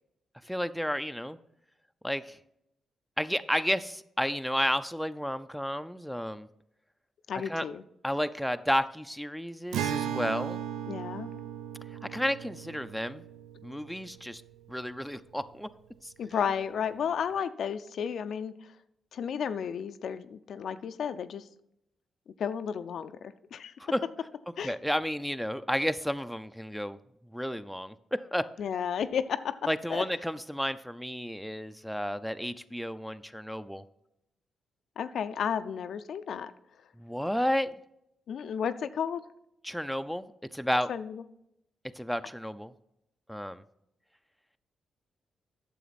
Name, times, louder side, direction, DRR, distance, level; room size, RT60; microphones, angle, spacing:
voice 1, 0.4-1.4 2.0-2.4 3.2-6.5 7.5-7.6 8.0-10.6 12.1-13.2 13.6-14.4 14.7-15.7 16.0-16.1 23.8-24.0 24.6-27.0 27.3-28.4 29.7-33.8 37.0-37.7 39.6-40.9 41.9-42.7 43.3-43.6, equal, ahead, 10 dB, 0.5 m, -32 dB
voice 2, 7.3-7.8 10.9-11.3 16.2-18.5 19.1-21.4 22.4-23.7 24.6-24.7 28.6-29.6 29.9-30.0 35.0-36.5 38.3-39.2 40.9-41.2, left 7 dB, 70° left, 11 dB, 0.4 m, -32 dB
Acoustic guitar, 9.7-15.2, right 9 dB, 85° right, 0.4 m, -37 dB
9.2 x 6.8 x 4.1 m, 0.80 s
cardioid pair, 65°, 0 cm